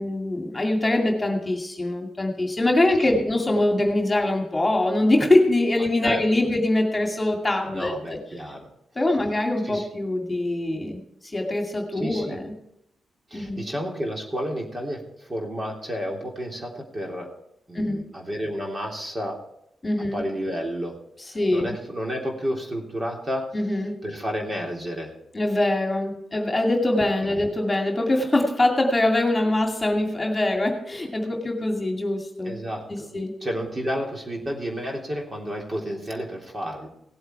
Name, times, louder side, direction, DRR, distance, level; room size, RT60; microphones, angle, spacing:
voice 1, 0.0-8.2 9.0-12.5 13.3-13.6 17.7-18.1 19.8-20.2 21.2-21.7 23.5-24.0 25.3-32.6 32.9-33.3, left 1 dB, 20° left, 2 dB, 2.4 m, -23 dB
voice 2, 7.7-8.7 9.6-9.9 12.0-12.4 13.3-17.3 17.7-19.4 20.1-21.0 21.5-23.4 24.0-25.1 27.2-27.5 32.5-33.1 33.4-36.9, equal, 30° right, 0 dB, 3.3 m, -31 dB
17.5 x 8.0 x 4.7 m, 0.77 s
cardioid pair, 75°, 0 cm